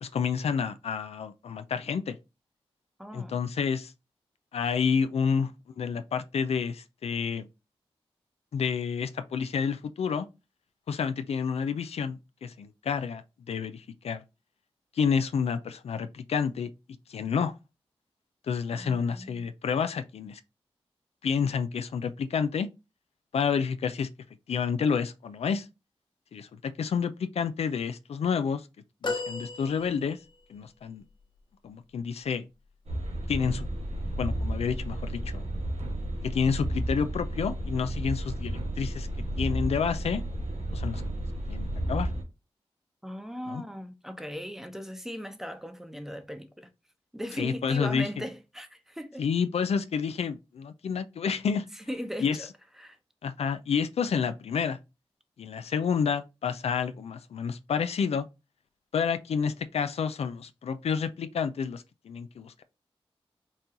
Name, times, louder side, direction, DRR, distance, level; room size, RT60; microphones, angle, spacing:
voice 1, 0.0-2.2 3.1-3.9 4.5-5.5 5.8-7.5 8.5-10.3 10.9-13.2 13.5-14.2 15.0-16.7 17.1-17.5 18.5-20.4 21.2-22.7 23.3-24.1 24.5-25.7 26.3-28.7 29.0-30.2 30.5-31.0 31.6-32.5 33.3-33.7 34.2-35.4 36.2-39.1 39.4-40.2 40.7-41.0 41.5-42.1 43.5-43.6 47.4-48.1 49.2-51.7 52.2-52.4 53.2-54.8 55.4-58.3 58.9-62.6, left 6 dB, 80° left, 0.4 m, -29 dB
voice 2, 3.0-3.4 18.7-19.5 43.0-46.7 47.1-49.2 51.8-52.5 52.8-53.0, equal, 5° right, 0.8 m, -38 dB
sound 1, 29.0-30.4 31.2-31.3, left 3 dB, 45° left, 0.8 m, -35 dB
sound 2, 32.9-42.2, right 1 dB, 90° right, 0.9 m, -32 dB
4.2 x 2.3 x 3.7 m
cardioid pair, 40°, 11 cm